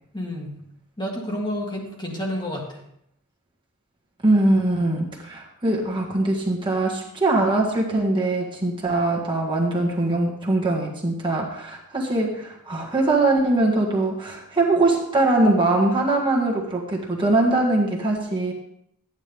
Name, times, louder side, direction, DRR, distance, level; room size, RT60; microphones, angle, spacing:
voice 1, 0.1-0.5 1.0-2.8, equal, 20° left, -1 dB, 1.8 m, -30 dB
voice 2, 4.2-18.5, right 2 dB, 20° right, -2 dB, 1.7 m, -22 dB
13.5 x 9.5 x 3.5 m, 0.73 s
head